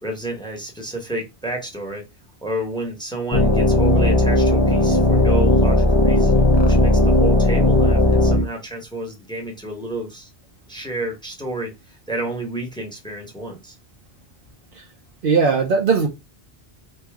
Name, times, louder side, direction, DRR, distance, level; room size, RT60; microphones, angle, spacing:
voice 1, 0.0-2.0 2.4-10.3 10.7-13.7, right 1 dB, 5° left, 0.9 m, -30 dB
sound 1, 3.3-8.4, left 1 dB, 30° left, 0.6 m, -16 dB
voice 2, 15.2-16.1, right 5 dB, 60° right, 0.8 m, -18 dB
3.1 x 2.6 x 3.5 m
omnidirectional pair, 1.1 m